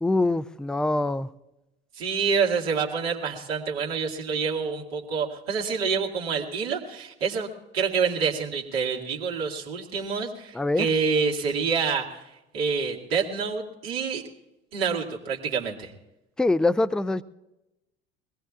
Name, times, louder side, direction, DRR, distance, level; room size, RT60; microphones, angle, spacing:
voice 1, 0.0-1.3 10.5-10.9 16.4-17.2, left 2 dB, ahead, 15 dB, 0.4 m, -24 dB
voice 2, 2.0-7.5 7.7-12.2 12.5-14.2 14.7-15.9, right 5 dB, 75° right, -2 dB, 2.1 m, -27 dB
22.5 x 17.5 x 2.4 m, 0.93 s
figure-of-eight pair, 60°, 30 cm